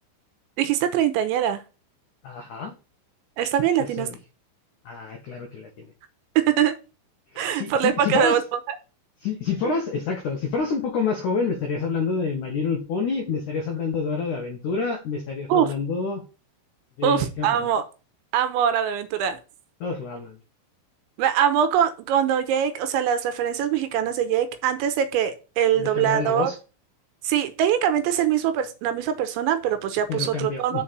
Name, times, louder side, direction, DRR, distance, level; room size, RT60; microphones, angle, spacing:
voice 1, 0.6-1.6 3.4-4.1 6.4-6.8 7.4-8.8 15.5-15.7 17.0-17.8 18.3-19.4 21.2-26.5 27.2-30.8, right 9 dB, 80° right, 2.9 m, -23 dB
voice 2, 2.2-2.7 4.0-4.2 4.8-5.9 7.3-8.4 9.2-16.2 17.0-17.7 19.8-20.4 25.8-26.5 30.1-30.8, left 5 dB, 85° left, 1.7 m, -28 dB
7.3 x 4.7 x 6.8 m
omnidirectional pair, 5.7 m